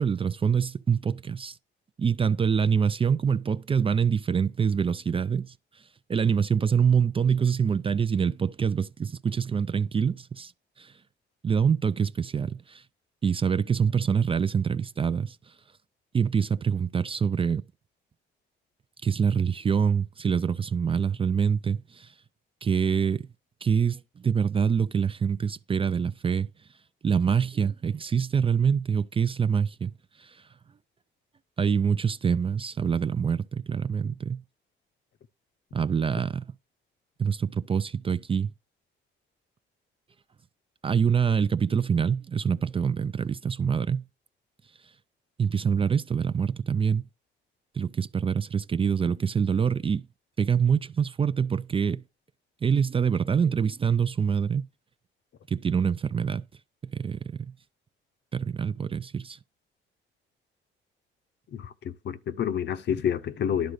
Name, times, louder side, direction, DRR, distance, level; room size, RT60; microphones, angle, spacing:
voice 1, 0.0-1.6 2.0-5.5 6.1-10.5 10.8-10.9 11.4-12.8 13.2-15.4 16.1-17.6 19.0-22.1 22.6-23.3 23.6-26.5 27.0-29.9 30.2-30.4 31.6-34.4 35.7-36.5 37.2-38.5 40.8-44.1 45.4-47.0 47.8-50.1 50.4-52.0 52.6-54.7 55.5-56.4 56.9-57.5 58.3-59.4, right 6 dB, 25° right, 0.4 m, -25 dB
voice 2, 61.5-63.7, left 8 dB, 60° left, 0.7 m, -29 dB
11.5 x 3.9 x 6.5 m
cardioid pair, 90°, 20 cm